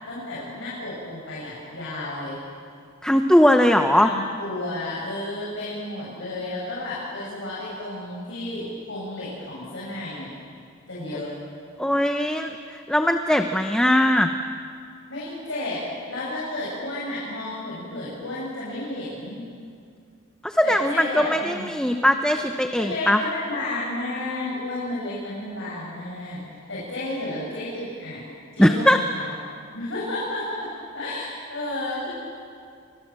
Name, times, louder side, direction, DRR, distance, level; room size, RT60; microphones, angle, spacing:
voice 1, 0.0-2.4 4.0-10.3 10.9-11.3 15.1-15.8 16.1-19.4 20.6-21.7 22.7-26.4 26.7-28.2 28.5-29.3 29.7-30.7 30.9-32.1, left 2 dB, 65° left, -7 dB, 7.8 m, -32 dB
voice 2, 3.0-4.1 11.8-14.3 20.4-23.2 28.6-29.0, left 1 dB, 5° left, 5 dB, 0.9 m, -20 dB
30.0 x 25.5 x 7.6 m, 2.3 s
head